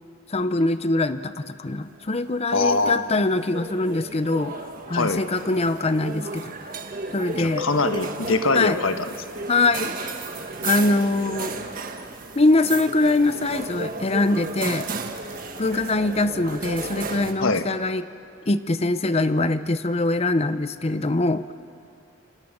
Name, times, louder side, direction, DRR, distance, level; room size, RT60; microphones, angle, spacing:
voice 1, 0.3-6.7 7.1-7.7 8.5-8.8 9.5-9.9 10.6-11.5 12.3-14.9 15.6-18.0 18.5-21.5, left 2 dB, 30° left, 12 dB, 0.7 m, -23 dB
sound 1, 2.2-17.3, right 3 dB, 45° right, 1.6 m, -34 dB
voice 2, 2.5-3.0 4.9-5.2 7.3-9.0 9.4-9.5 17.4-17.6, left 3 dB, 80° left, 8 dB, 1.4 m, -23 dB
28.0 x 28.0 x 6.6 m, 2.5 s
head